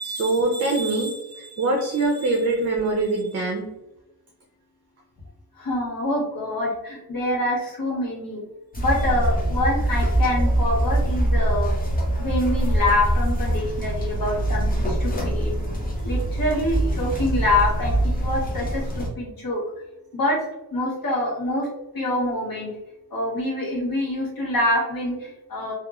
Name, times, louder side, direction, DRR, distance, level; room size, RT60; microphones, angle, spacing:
voice 1, 0.0-3.7, right 2 dB, 45° right, 1 dB, 0.5 m, -24 dB
voice 2, 5.5-8.4 8.8-11.7 12.1-15.6 16.0-19.6 20.1-20.4 20.7-21.7 21.9-22.7 23.1-25.7, left 1 dB, 65° left, -3 dB, 0.9 m, -25 dB
sound 1, 8.7-19.1, right 1 dB, 25° left, 0.7 m, -23 dB
2.9 x 2.3 x 2.3 m, 0.93 s
wide cardioid pair, 105°, 37 cm